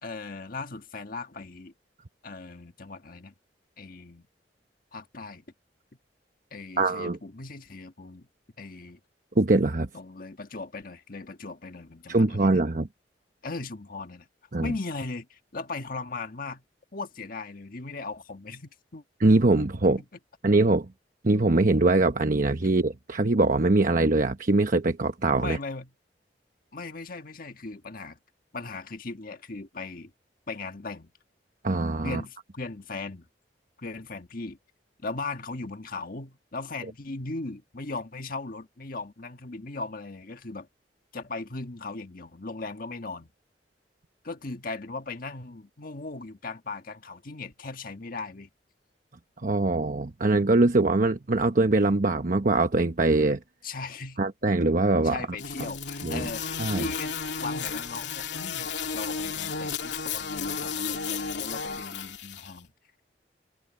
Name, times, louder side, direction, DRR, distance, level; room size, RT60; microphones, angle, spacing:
voice 1, 0.0-1.7 2.2-3.3 3.8-4.3 4.9-5.4 6.5-8.3 8.6-9.0 9.9-12.6 13.4-14.3 14.6-16.6 16.9-19.0 19.8-19.9 25.4-25.9 26.7-28.2 28.5-30.1 30.5-31.1 32.0-33.3 33.8-34.6 35.0-40.7 41.1-43.3 44.2-48.5 53.6-54.2 55.0-62.7, left 3 dB, 55° left, 1.6 m, -38 dB
voice 2, 6.8-7.2 9.4-9.9 12.1-12.9 14.5-14.7 19.2-20.0 20.4-20.9 21.2-25.6 31.6-32.2 49.4-53.4 54.2-55.2 56.0-56.3 56.6-56.9, right 2 dB, 50° right, 1.0 m, -22 dB
sound 1, 55.4-62.5, left 6 dB, 90° left, 2.6 m, -33 dB
head